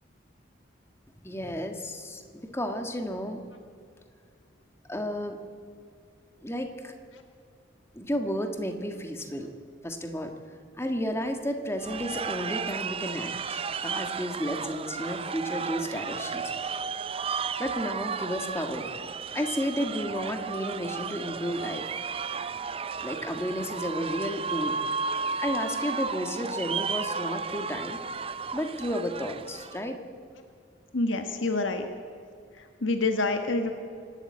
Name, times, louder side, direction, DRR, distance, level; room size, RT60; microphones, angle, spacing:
voice 1, 1.2-3.4 4.9-5.4 6.4-6.9 7.9-9.5 9.8-16.5 17.6-18.9 19.3-21.9 23.0-24.8 25.4-28.0 28.5-30.0, equal, 15° left, 5 dB, 1.6 m, -32 dB
sound 1, 11.8-29.8, right 5 dB, 30° right, 0.6 m, -33 dB
voice 2, 30.9-31.9 32.8-33.7, left 2 dB, 80° left, 6 dB, 1.3 m, -27 dB
25.5 x 12.5 x 8.7 m, 2.2 s
head